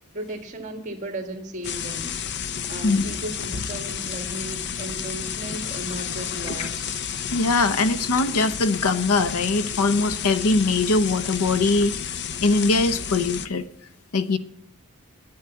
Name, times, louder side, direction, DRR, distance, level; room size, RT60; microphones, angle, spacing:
voice 1, 0.1-2.1 2.7-6.9, right 1 dB, 35° right, 5 dB, 1.7 m, -35 dB
sound 1, 1.6-13.5, left 7 dB, 50° left, 0.6 m, -31 dB
voice 2, 7.3-11.9 12.4-13.7 14.1-14.4, left 3 dB, 90° left, 13 dB, 0.8 m, -21 dB
10.5 x 8.8 x 7.8 m, 0.74 s
head